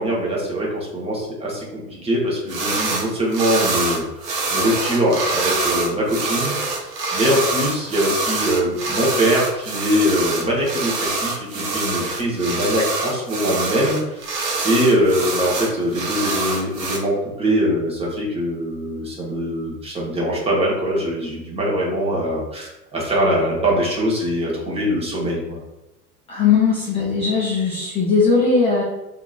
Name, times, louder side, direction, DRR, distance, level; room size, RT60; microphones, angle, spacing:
voice 1, 0.0-25.6, equal, 15° right, -4 dB, 0.8 m, -22 dB
sound 1, 2.5-3.1 3.3-17.0, right 3 dB, 80° right, 0.8 m, -25 dB
voice 2, 26.3-28.8, left 5 dB, 15° left, -6 dB, 0.4 m, -18 dB
2.9 x 2.5 x 2.3 m, 0.99 s
figure-of-eight pair, 85°, 47 cm